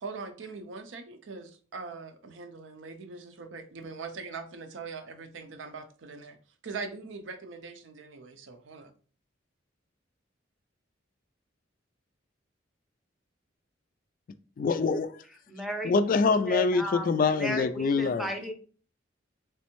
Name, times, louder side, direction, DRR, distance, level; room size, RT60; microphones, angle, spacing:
voice 1, 0.0-6.4 6.6-8.9, right 4 dB, 75° right, 0.5 m, -41 dB
voice 2, 14.6-15.1 15.8-18.3, left 4 dB, 45° left, 0.3 m, -25 dB
voice 3, 15.5-16.0 16.4-17.1 17.3-18.5, equal, ahead, 0.6 m, -34 dB
3.3 x 3.1 x 3.0 m
head